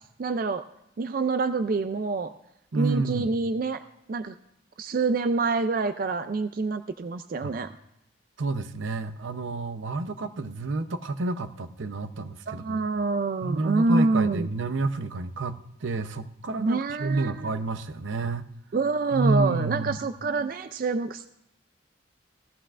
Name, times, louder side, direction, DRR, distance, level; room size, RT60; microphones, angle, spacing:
voice 1, 0.2-0.6 1.0-2.3 2.7-3.8 4.1-4.4 4.8-7.7 12.5-14.5 16.6-17.5 18.7-21.3, right 3 dB, 45° right, 11 dB, 0.4 m, -26 dB
voice 2, 2.7-3.3 7.4-7.5 8.4-12.8 13.4-18.5 19.1-20.0, right 3 dB, 85° right, 9 dB, 0.7 m, -29 dB
17.5 x 14.0 x 2.5 m, 0.80 s
head